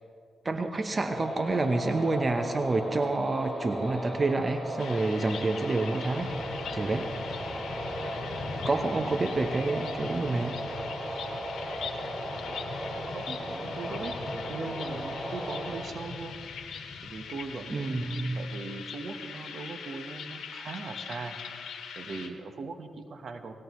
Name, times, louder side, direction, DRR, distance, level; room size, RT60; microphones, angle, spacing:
voice 1, 0.4-6.3 6.7-7.1 7.4-7.5 8.6-10.6 17.7-18.4, right 3 dB, 35° right, 6 dB, 0.9 m, -28 dB
sound 1, 1.0-15.8, equal, 20° right, 4.9 m, -36 dB
sound 2, 4.8-22.3, left 7 dB, 85° left, 1.4 m, -42 dB
sound 3, 6.2-17.6, left 3 dB, 70° left, 1.8 m, -43 dB
voice 2, 13.1-14.2 14.5-16.3 17.0-21.4 22.0-23.5, right 4 dB, 60° right, 6 dB, 1.3 m, -40 dB
19.0 x 18.0 x 3.2 m, 2.1 s
cardioid pair, 65°, 0 cm